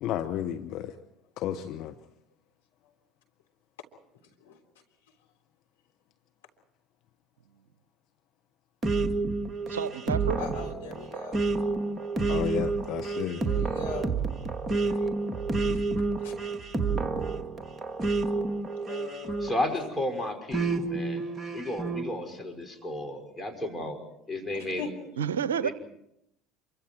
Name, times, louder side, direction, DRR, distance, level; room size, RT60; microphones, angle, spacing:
voice 1, 0.0-1.0 1.4-1.9 12.2-13.4, left 11 dB, 55° left, 9 dB, 1.0 m, -32 dB
sound 1, 8.8-19.9 20.5-22.1, right 3 dB, 25° right, 2.2 m, -29 dB
voice 2, 9.7-10.4 25.2-25.7, right 7 dB, 80° right, 16 dB, 0.7 m, -29 dB
voice 3, 10.4-12.0 13.4-14.1 14.7-15.1 16.2-16.3 18.9-19.5 24.5-24.9, left 5 dB, 80° left, 2 dB, 3.5 m, -41 dB
voice 4, 19.4-21.2 21.5-24.0 24.3-24.8 25.6-25.7, left 1 dB, 15° left, 4 dB, 5.7 m, -33 dB
27.0 x 24.0 x 4.7 m, 0.79 s
figure-of-eight pair, 65°, 0 cm